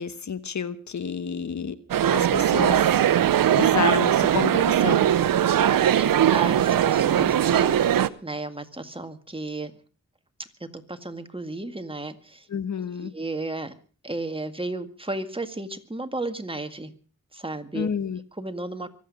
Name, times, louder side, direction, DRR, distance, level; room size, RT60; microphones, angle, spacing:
voice 1, 0.0-1.8 2.1-3.0 3.5-5.0 6.7-6.8 7.1-7.3 12.5-13.1 17.7-18.2, left 6 dB, 60° left, 14 dB, 1.2 m, -30 dB
sound 1, 1.9-8.1, right 10 dB, 90° right, 0.7 m, -20 dB
voice 2, 5.2-9.7 10.6-12.5 13.0-13.7 14.0-16.9 17.3-17.9 18.4-18.9, right 2 dB, 15° right, 8 dB, 1.9 m, -34 dB
24.0 x 8.4 x 6.3 m, 0.40 s
cardioid pair, 55°, 33 cm